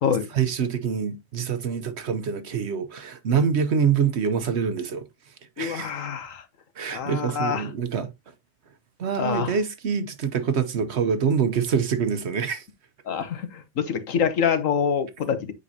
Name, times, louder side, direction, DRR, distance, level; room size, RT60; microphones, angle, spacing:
voice 1, 0.3-5.0 5.6-5.9 6.8-8.1 9.0-12.7, right 6 dB, 60° right, 1.0 m, -25 dB
voice 2, 5.6-6.4 6.9-7.7 9.2-9.6 13.0-15.5, left 7 dB, 70° left, 1.4 m, -26 dB
8.3 x 5.2 x 2.7 m
omnidirectional pair, 1.4 m